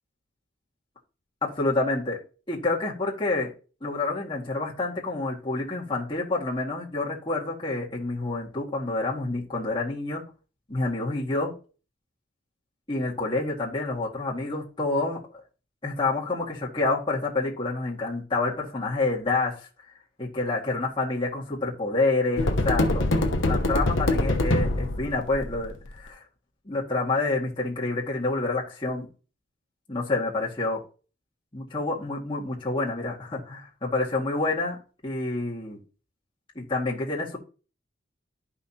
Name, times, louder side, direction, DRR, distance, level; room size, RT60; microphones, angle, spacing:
voice 1, 1.4-2.2 2.5-3.5 3.8-10.2 10.7-11.5 12.9-15.2 15.8-19.7 20.2-23.1 23.4-26.2 26.7-29.1 29.9-30.8 31.5-35.8 36.6-37.4, left 2 dB, 25° left, 1.9 m, -28 dB
sound 1, 22.4-25.8, left 2 dB, 70° left, 1.0 m, -24 dB
11.5 x 5.7 x 2.8 m
head